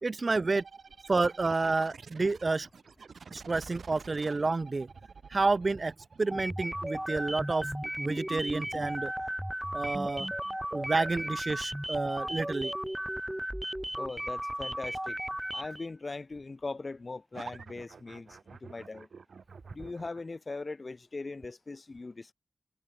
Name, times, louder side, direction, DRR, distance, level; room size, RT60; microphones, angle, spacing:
voice 1, 0.0-0.6 1.1-2.7 3.3-4.9 5.3-7.7 8.0-9.1 9.7-10.3 10.7-12.7, right 3 dB, 45° right, 0.5 m, -29 dB
sound 1, 0.6-10.0 17.3-20.2, right 5 dB, 80° right, 6.8 m, -50 dB
sound 2, 6.3-15.9, equal, 5° right, 1.8 m, -35 dB
voice 2, 14.0-15.2 15.5-19.1 19.7-22.3, left 3 dB, 40° left, 1.0 m, -40 dB
wide cardioid pair, 90°, 0 cm